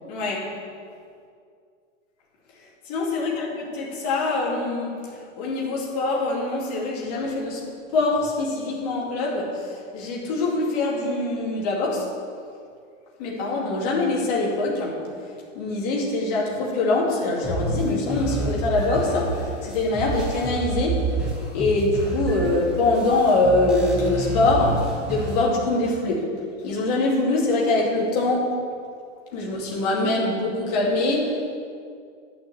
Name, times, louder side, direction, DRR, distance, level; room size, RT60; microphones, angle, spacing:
voice 1, 0.1-0.5 2.9-7.6 7.9-12.1 13.2-15.1 15.5-21.1 21.5-26.4 26.6-28.6 29.3-31.5, left 2 dB, 35° left, -3 dB, 2.4 m, -24 dB
sound 1, 17.4-25.4, right 2 dB, ahead, 1.0 m, -29 dB
11.0 x 5.9 x 8.5 m, 2.3 s
supercardioid pair, 175°, 37 cm